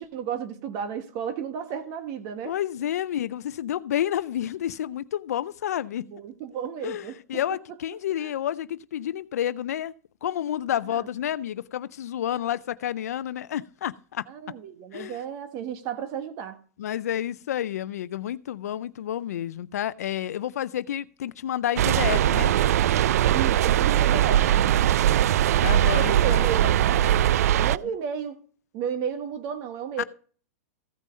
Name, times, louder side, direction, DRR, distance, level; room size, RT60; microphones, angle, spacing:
voice 1, 0.0-2.5 6.0-7.2 8.2-8.3 10.9-11.1 14.3-16.6 23.3-24.8 26.0-27.1 27.6-28.4 28.7-30.0, right 7 dB, 45° right, 1.4 m, -33 dB
voice 2, 2.4-6.0 6.8-9.9 10.2-14.3 14.9-15.2 16.8-22.5 25.6-26.4 30.0-30.1, left 11 dB, 80° left, 0.5 m, -30 dB
sound 1, 21.8-27.8, right 12 dB, 75° right, 0.4 m, -21 dB
15.0 x 5.4 x 5.1 m
hypercardioid pair, 130°, 8 cm